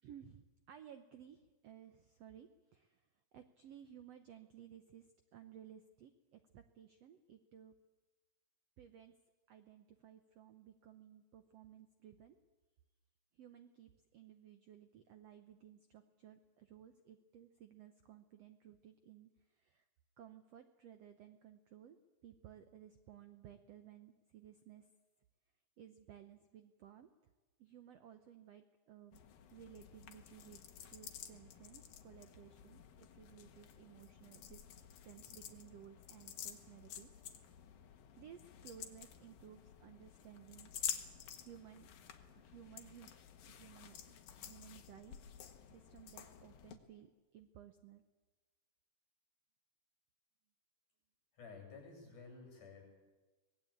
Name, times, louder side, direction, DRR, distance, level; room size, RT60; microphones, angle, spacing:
voice 1, 0.0-3.0 3.3-7.7 8.8-9.1 9.5-12.4 13.3-19.8 20.2-22.0 22.2-24.9 25.8-27.1 27.6-29.2 29.5-34.7 35.0-37.1 37.7-40.7 41.4-41.9 42.3-43.1 43.4-44.0 44.4-48.0, right 10 dB, 75° right, 9 dB, 1.4 m, -58 dB
sound 1, 29.1-46.8, left 9 dB, 75° left, 3.2 m, -51 dB
voice 2, 51.3-52.8, left 4 dB, 55° left, 2 dB, 9.0 m, -53 dB
24.5 x 19.5 x 8.7 m, 1.2 s
omnidirectional pair, 4.2 m